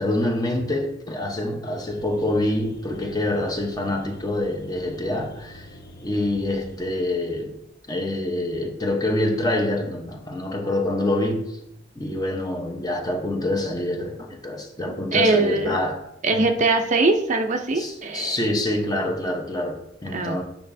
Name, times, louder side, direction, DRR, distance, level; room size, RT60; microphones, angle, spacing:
voice 1, 0.0-5.7 6.0-7.5 7.9-11.6 12.0-16.0 16.3-16.4 17.7-20.4, left 1 dB, 20° left, 0.9 m, -26 dB
sound 1, 1.8-6.8, left 1 dB, 55° left, 0.8 m, -45 dB
voice 2, 14.9-15.8 16.2-18.3 20.1-20.4, right 3 dB, 40° right, 0.6 m, -22 dB
8.7 x 5.7 x 2.7 m
head